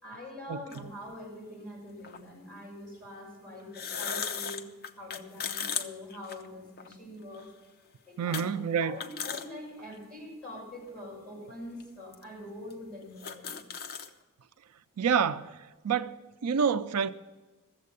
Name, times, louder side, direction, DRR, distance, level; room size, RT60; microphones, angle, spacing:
voice 1, 0.0-4.7 5.0-7.5 8.1-13.6, left 1 dB, 5° left, 6.0 m, -44 dB
sound 1, 0.7-0.8 2.0-2.2 3.6-6.9 7.3-7.5 8.3-8.5 8.8-9.5 9.9-10.0 10.9-11.0 11.8-11.9 12.1-12.2 12.7-12.8 13.0-14.1, left 7 dB, 45° left, 0.8 m, -36 dB
voice 2, 8.2-9.0 15.0-15.6 15.8-17.1, right 7 dB, 85° right, 0.5 m, -28 dB
14.5 x 7.5 x 8.3 m
head